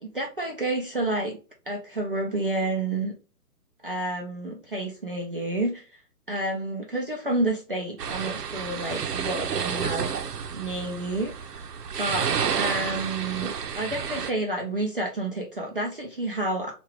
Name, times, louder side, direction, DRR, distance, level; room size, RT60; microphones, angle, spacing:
voice 1, 0.0-1.4 1.7-3.1 3.8-5.9 6.3-10.1 10.5-11.3 12.0-12.3 12.6-16.7, right 2 dB, 35° right, 0 dB, 0.5 m, -29 dB
sound 1, 8.0-14.3, right 7 dB, 80° right, 0.7 m, -30 dB
4.4 x 2.5 x 3.1 m, 0.35 s
hypercardioid pair, 165°, 47 cm